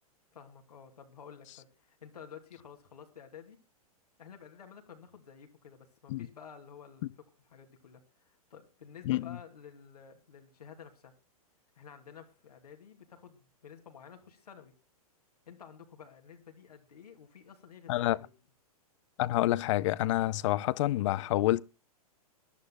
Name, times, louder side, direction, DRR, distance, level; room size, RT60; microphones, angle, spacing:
voice 1, 0.3-3.6 4.2-7.1 7.5-11.1 11.8-14.7 15.5-18.3, left 7 dB, 85° left, 2.7 m, -52 dB
voice 2, 19.2-21.6, left 15 dB, 55° left, 0.6 m, -28 dB
22.5 x 11.5 x 2.3 m
hypercardioid pair, 125°, 19 cm